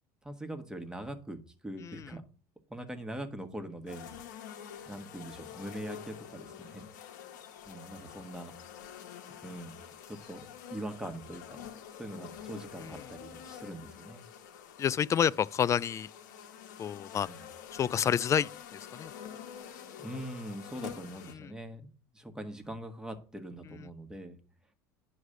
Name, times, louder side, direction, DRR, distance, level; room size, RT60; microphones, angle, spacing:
voice 1, 0.2-1.4 1.6-2.2 2.7-4.1 4.9-6.9 7.7-8.5 9.4-9.8 10.1-11.7 12.0-14.2 17.2-17.4 20.0-21.9 22.1-24.4, right 1 dB, 5° right, 1.4 m, -42 dB
sound 1, 3.9-21.3, left 8 dB, 90° left, 1.3 m, -47 dB
voice 2, 14.8-16.1 16.8-17.3 17.8-18.5 19.0-19.1 21.4-21.5, left 8 dB, 30° left, 0.3 m, -28 dB
9.6 x 3.2 x 6.5 m
supercardioid pair, 95°, 10 cm